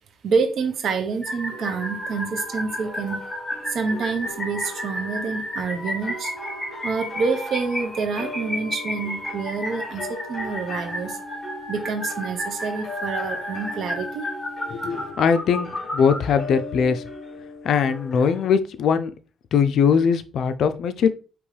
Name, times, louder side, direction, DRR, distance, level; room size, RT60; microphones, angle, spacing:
voice 1, 0.2-3.2 3.7-6.3 6.8-11.2 11.7-14.3, right 5 dB, 65° right, 7 dB, 1.0 m, -27 dB
sound 1, 1.2-16.2, left 1 dB, 20° left, 1.6 m, -32 dB
sound 2, 1.5-18.5, left 2 dB, 45° left, 1.4 m, -39 dB
voice 2, 14.7-17.1 17.6-19.1 19.5-21.1, left 6 dB, 70° left, 11 dB, 0.4 m, -21 dB
5.2 x 3.0 x 3.2 m, 0.36 s
cardioid pair, 90°, 0 cm